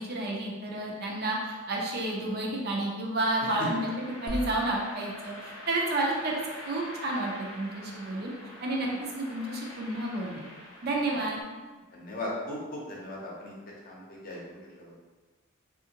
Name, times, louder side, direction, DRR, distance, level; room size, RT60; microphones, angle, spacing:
voice 1, 0.0-3.9 4.2-6.4 6.7-8.3 8.6-10.5 10.8-11.4, right 2 dB, 50° right, -1 dB, 0.5 m, -31 dB
sound 1, 3.3-11.4, left 1 dB, 75° left, 0.7 m, -46 dB
sound 2, 4.3-8.1, left 1 dB, 20° left, 0.3 m, -43 dB
voice 2, 11.9-13.5 13.9-15.0, left 1 dB, 45° left, -4 dB, 0.7 m, -38 dB
3.3 x 2.4 x 2.8 m, 1.3 s
head